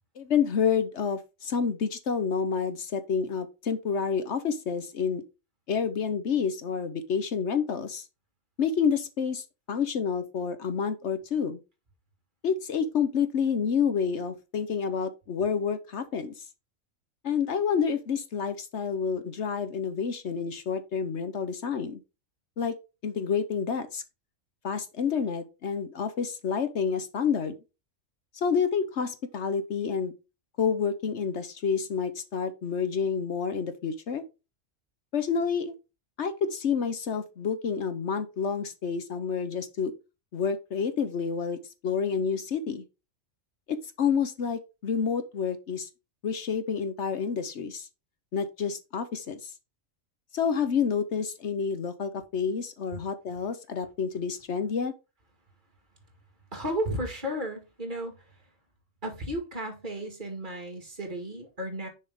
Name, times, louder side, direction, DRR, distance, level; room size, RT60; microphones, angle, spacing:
voice 1, 0.2-5.2 5.7-8.1 8.6-11.6 12.4-16.4 17.2-22.0 22.6-22.8 23.0-24.0 24.6-27.5 28.3-30.1 30.6-34.2 35.1-35.7 36.2-39.9 40.3-42.8 43.7-45.9 46.2-47.9 48.3-49.5 50.3-54.9, left 6 dB, 65° left, 1.1 m, -29 dB
voice 2, 56.5-58.1 59.0-61.9, equal, 40° right, 2.2 m, -33 dB
6.7 x 5.4 x 3.6 m
omnidirectional pair, 1.3 m